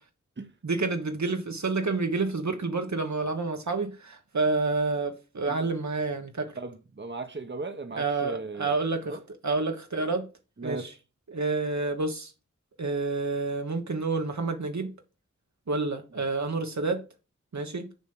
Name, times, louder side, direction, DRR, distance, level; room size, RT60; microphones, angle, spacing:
voice 1, 0.6-6.5 7.9-10.3 10.6-10.9 11.3-12.3 12.8-14.9 15.7-17.0 17.5-17.9, right 3 dB, 70° right, 1.4 m, -29 dB
voice 2, 6.6-8.7 9.1-9.2 10.6-11.0, right 3 dB, 40° right, 1.1 m, -37 dB
7.1 x 5.2 x 6.1 m
wide cardioid pair, 65°, 30 cm